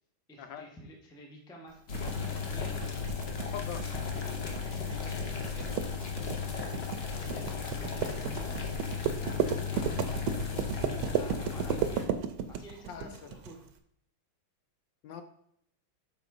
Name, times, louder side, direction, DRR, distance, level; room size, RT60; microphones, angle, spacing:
voice 1, 0.3-2.9 3.8-4.4 4.6-5.8 6.2-9.4 9.7-10.4 10.6-12.2 12.5-13.7, equal, 5° left, 0 dB, 0.4 m, -50 dB
sound 1, 1.9-12.1, left 6 dB, 50° left, 0.8 m, -35 dB
sound 2, 1.9-13.5, right 8 dB, 85° right, 1.5 m, -33 dB
voice 2, 3.4-3.8 12.9-13.3 15.0-15.2, left 7 dB, 70° left, 8 dB, 1.2 m, -41 dB
7.0 x 3.9 x 4.7 m, 0.71 s
omnidirectional pair, 2.3 m